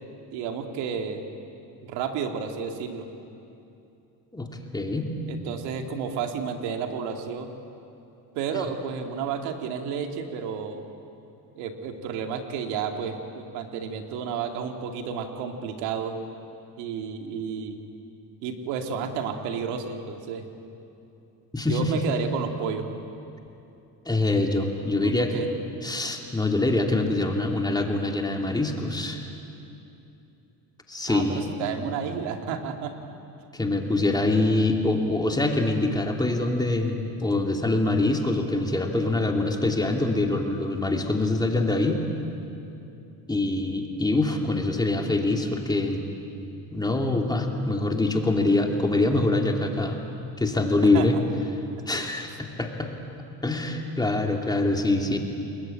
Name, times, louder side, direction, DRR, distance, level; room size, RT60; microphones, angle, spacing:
voice 1, 0.3-1.2 1.8-3.1 5.3-7.5 8.3-10.8 11.6-16.2 16.8-17.8 18.4-20.5 21.7-22.9 25.0-25.5 31.1-33.0 33.8-34.1 41.5-41.7 50.8-51.1 51.9-52.0, right 6 dB, 90° right, 5 dB, 2.4 m, -31 dB
voice 2, 4.7-5.1 8.5-8.6 21.5-21.9 24.1-25.4 25.8-29.3 30.9-31.4 33.5-42.0 43.3-46.0 46.7-50.0 50.4-51.2 51.9-52.9 53.4-55.2, left 2 dB, 10° left, 2 dB, 2.8 m, -24 dB
29.5 x 21.0 x 8.8 m, 2.8 s
cardioid pair, 115°, 40 cm